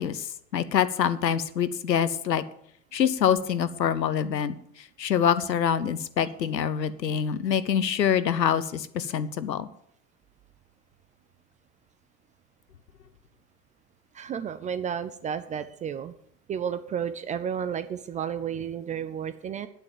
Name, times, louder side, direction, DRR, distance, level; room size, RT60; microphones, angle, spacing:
voice 1, 0.0-2.4 2.9-4.6 5.0-9.7, left 8 dB, 85° left, 15 dB, 0.9 m, -25 dB
voice 2, 14.1-16.1 16.5-19.7, right 8 dB, 15° right, 13 dB, 0.4 m, -32 dB
9.8 x 9.0 x 7.3 m, 0.70 s
figure-of-eight pair, 75°, 49 cm